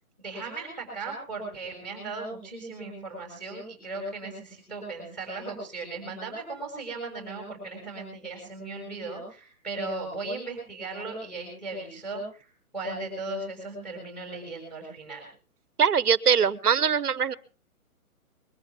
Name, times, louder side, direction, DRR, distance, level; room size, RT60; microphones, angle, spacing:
voice 1, 0.2-12.5 12.7-15.3, right 3 dB, ahead, 0 dB, 6.4 m, -37 dB
voice 2, 15.8-17.3, right 7 dB, 90° right, 18 dB, 1.3 m, -22 dB
22.0 x 14.5 x 3.6 m, 0.37 s
hypercardioid pair, 170°, 44 cm